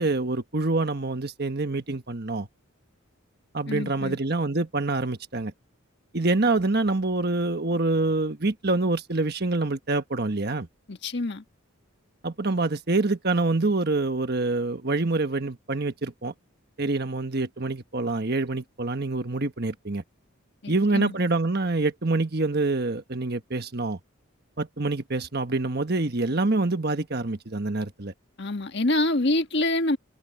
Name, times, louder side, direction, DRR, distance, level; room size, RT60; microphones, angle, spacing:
voice 1, 0.0-2.5 3.5-5.5 6.1-10.7 12.2-16.3 16.8-20.0 20.7-24.0 24.6-28.1, right 2 dB, 50° right, 1.4 m, -26 dB
voice 2, 3.7-4.2 10.9-11.4 20.6-21.2 28.4-30.0, left 2 dB, 55° left, 1.6 m, -26 dB
head